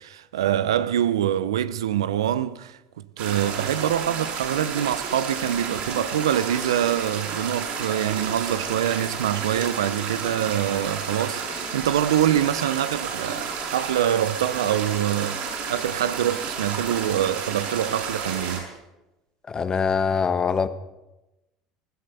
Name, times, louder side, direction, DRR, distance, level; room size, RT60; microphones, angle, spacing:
voice 1, 0.0-2.8 3.2-18.7, right 11 dB, 85° right, 0.6 m, -25 dB
sound 1, 3.2-18.6, right 5 dB, 65° right, 5.9 m, -31 dB
voice 2, 19.5-20.7, left 6 dB, 30° left, 1.2 m, -23 dB
19.5 x 12.0 x 5.5 m
hypercardioid pair, 75°, 2 cm